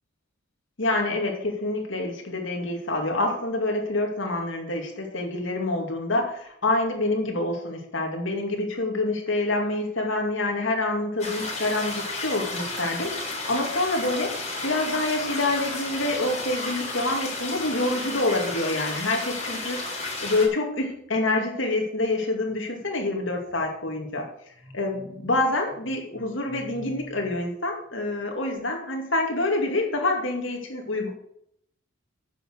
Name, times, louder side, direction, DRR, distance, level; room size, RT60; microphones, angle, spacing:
voice 1, 0.8-24.3 24.7-31.1, left 2 dB, 65° left, 2 dB, 2.5 m, -27 dB
sound 1, 11.2-20.5, left 2 dB, 35° left, 4.2 m, -32 dB
9.9 x 7.3 x 6.4 m, 0.73 s
head